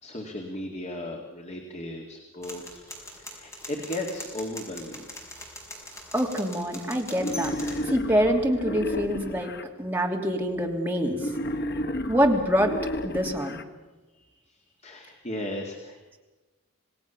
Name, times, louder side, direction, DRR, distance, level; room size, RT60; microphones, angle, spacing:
voice 1, 0.0-2.8 3.2-5.1 14.1-14.3 14.8-16.2, left 1 dB, 35° left, 2 dB, 2.2 m, -36 dB
sound 1, 2.4-7.9, left 1 dB, 15° left, 5.9 m, -42 dB
voice 2, 6.1-7.6 7.9-9.5 9.8-11.2 12.1-12.7 13.0-13.6, equal, 10° right, 0 dB, 3.0 m, -25 dB
Wild animals, 7.1-9.6 11.1-13.6, equal, 55° left, 1.4 m, -32 dB
28.0 x 18.5 x 7.1 m, 1.2 s
head